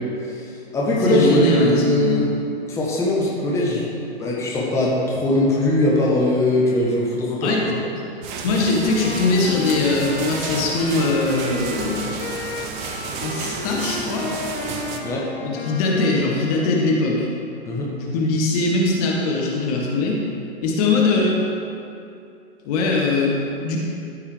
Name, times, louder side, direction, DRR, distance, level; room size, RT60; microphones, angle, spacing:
voice 1, 0.2-2.2 2.7-3.9 4.2-7.7 15.0-15.3 17.6-17.9, left 1 dB, 10° left, -5 dB, 1.1 m, -20 dB
voice 2, 0.9-2.3 7.4-7.6 8.4-12.2 13.2-14.3 15.4-17.3 18.0-20.2 20.6-21.4 22.6-23.8, left 3 dB, 35° left, -2 dB, 1.3 m, -21 dB
sound 1, 8.2-15.0, right 5 dB, 20° right, 0.5 m, -32 dB
Wind instrument woodwind instrument, 8.8-16.9, left 3 dB, 55° left, 1.1 m, -33 dB
13.5 x 5.4 x 3.3 m, 2.6 s
figure-of-eight pair, 115°, 32 cm